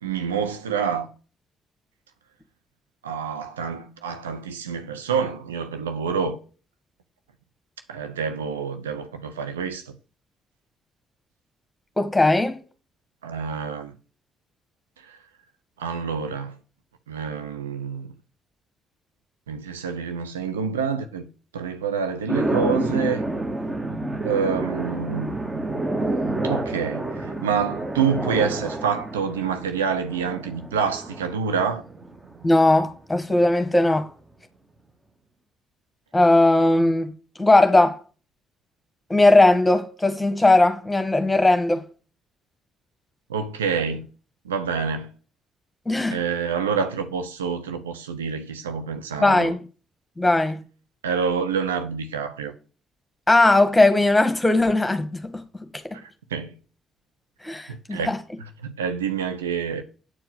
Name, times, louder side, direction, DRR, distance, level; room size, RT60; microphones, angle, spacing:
voice 1, 0.0-1.1 3.0-6.4 7.9-9.9 13.2-14.0 15.0-15.2 15.8-16.6 17.1-18.1 19.5-21.3 21.5-23.2 24.2-25.3 26.4-31.8 43.3-44.1 44.4-45.1 46.1-49.5 51.0-52.5 56.0-56.6 57.7-58.1 58.4-59.8, right 6 dB, 80° right, 0.7 m, -27 dB
voice 2, 12.0-12.6 32.4-34.1 36.1-37.1 37.4-38.0 39.1-41.8 45.8-46.2 49.2-49.6 50.2-50.6 53.3-55.3 57.4-58.2, left 2 dB, 10° left, 1.8 m, -18 dB
sound 1, 22.3-32.7, right 2 dB, 20° right, 1.2 m, -29 dB
8.6 x 4.6 x 6.8 m
figure-of-eight pair, 40°, 0 cm